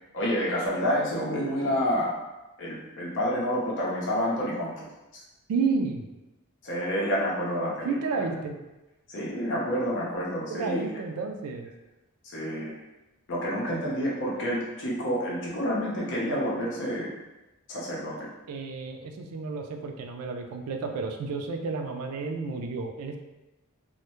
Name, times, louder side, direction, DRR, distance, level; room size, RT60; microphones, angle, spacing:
voice 1, 0.1-2.1 2.6-5.2 6.6-8.0 9.1-10.9 12.2-12.7 13.3-17.1 17.7-18.3, equal, 55° left, -4 dB, 0.7 m, -29 dB
voice 2, 5.5-6.1 7.8-8.6 10.5-11.7 18.5-23.2, right 4 dB, 80° right, 4 dB, 0.3 m, -31 dB
2.2 x 2.0 x 2.9 m, 1.0 s
head